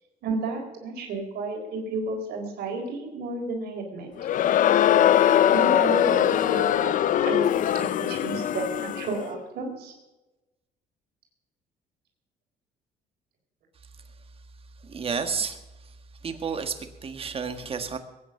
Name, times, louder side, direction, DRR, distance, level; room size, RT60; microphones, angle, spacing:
voice 1, 0.2-4.1 5.5-9.9, right 3 dB, 70° right, 2 dB, 4.1 m, -32 dB
Crowd, 4.2-9.2, left 11 dB, 50° left, 0.5 m, -21 dB
voice 2, 14.8-16.0 16.2-18.0, right 6 dB, 35° right, 8 dB, 1.6 m, -31 dB
21.5 x 9.5 x 5.9 m, 1.1 s
cardioid pair, 110°, 17 cm